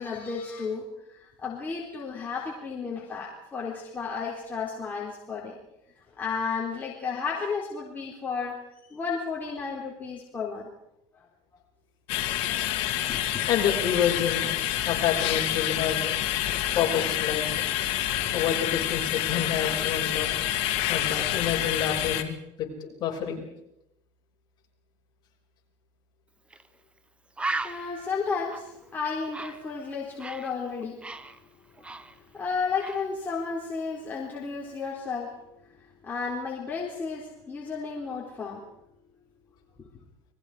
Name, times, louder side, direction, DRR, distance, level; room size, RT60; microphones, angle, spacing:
voice 1, 0.0-5.6 6.2-8.5 8.9-10.7 13.1-13.2 27.6-31.0 31.8-31.9 32.3-35.3 36.0-38.6, left 5 dB, 15° left, -3 dB, 3.9 m, -33 dB
sound 1, 12.1-22.2, left 13 dB, 65° left, 2.2 m, -28 dB
voice 2, 13.5-14.5 14.8-16.1 16.7-17.4 18.3-20.3 20.9-23.4, left 8 dB, 45° left, -1 dB, 6.3 m, -28 dB
Bird, 26.5-26.7 27.0-27.1 27.4-30.5 30.8-32.5 32.8-33.1, right 2 dB, 10° right, 0.9 m, -36 dB
30.0 x 21.0 x 4.9 m, 0.82 s
cardioid pair, 150°, 11 cm